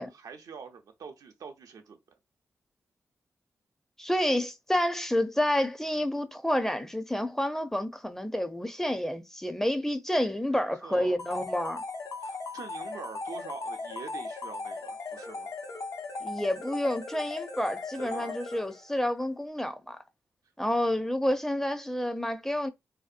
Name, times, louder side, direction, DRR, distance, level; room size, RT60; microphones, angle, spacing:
voice 1, 0.0-2.0 10.5-11.2 12.2-15.5 18.0-18.4, right 5 dB, 75° right, 0.5 m, -45 dB
voice 2, 4.0-11.8 16.2-20.0 20.6-22.7, left 1 dB, 5° left, 0.5 m, -29 dB
sound 1, 11.2-18.9, left 3 dB, 60° left, 0.6 m, -38 dB
2.7 x 2.0 x 2.4 m
supercardioid pair, 40°, 6 cm